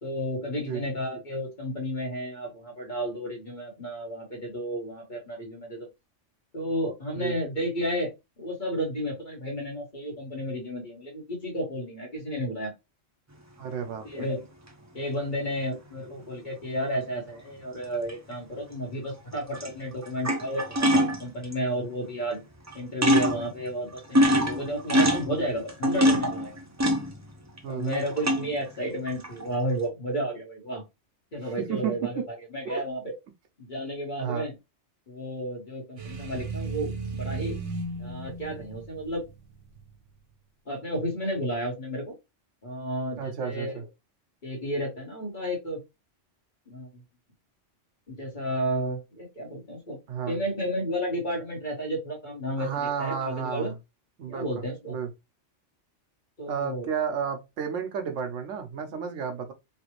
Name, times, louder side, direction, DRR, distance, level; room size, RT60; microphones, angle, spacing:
voice 1, 0.0-5.9 6.5-8.1 8.4-12.7 14.0-14.5 14.9-22.4 22.7-26.6 27.7-30.8 31.3-33.0 33.6-34.5 35.1-37.6 38.0-39.2 40.7-42.1 42.6-43.7 44.4-45.8 46.7-47.0 48.1-50.0 50.3-53.7 54.3-55.0 56.4-56.9, equal, 40° left, 1.4 m, -32 dB
voice 2, 13.6-14.3 27.6-28.0 31.6-31.9 32.6-32.8 34.2-34.5 43.2-43.8 50.1-50.4 52.6-53.7 54.2-54.5 54.9-55.1 56.5-59.5, right 7 dB, 80° right, 1.0 m, -32 dB
sound 1, 14.0-14.1 18.1-18.3 19.3-19.7 20.0-21.5 22.3-22.4 22.7-22.8 23.0-23.5 23.9-27.6 27.9-28.6 29.1-29.6, equal, 30° right, 0.3 m, -24 dB
sound 2, 36.0-39.9, right 3 dB, 65° right, 1.3 m, -35 dB
3.3 x 2.4 x 3.0 m
omnidirectional pair, 1.2 m